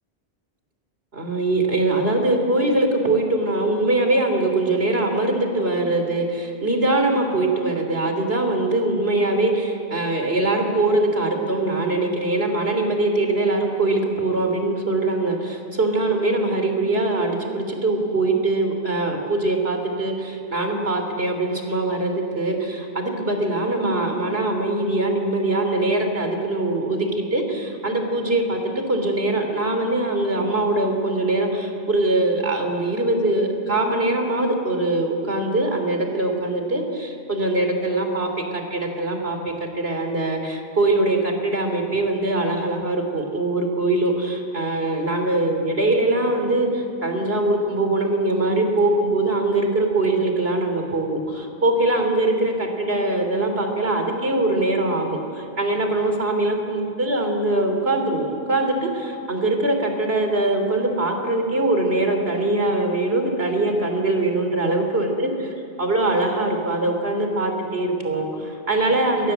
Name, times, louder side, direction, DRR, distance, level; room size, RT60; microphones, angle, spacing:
voice 1, 1.1-65.3 65.8-69.3, right 2 dB, 70° right, 4 dB, 3.8 m, -22 dB
30.0 x 23.5 x 8.2 m, 2.6 s
omnidirectional pair, 1.1 m